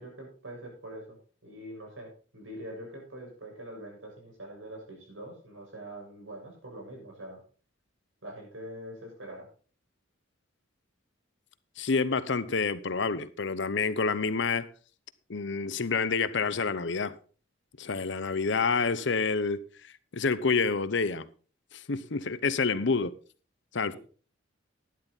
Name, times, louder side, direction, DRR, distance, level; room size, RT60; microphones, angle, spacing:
voice 1, 0.0-7.4 8.2-9.5, right 1 dB, 90° right, 7.1 m, -44 dB
voice 2, 11.8-14.7 15.3-17.2 17.8-19.6 20.1-21.3 21.7-23.1 23.7-24.0, left 4 dB, 65° left, 0.8 m, -28 dB
12.5 x 10.5 x 4.1 m
head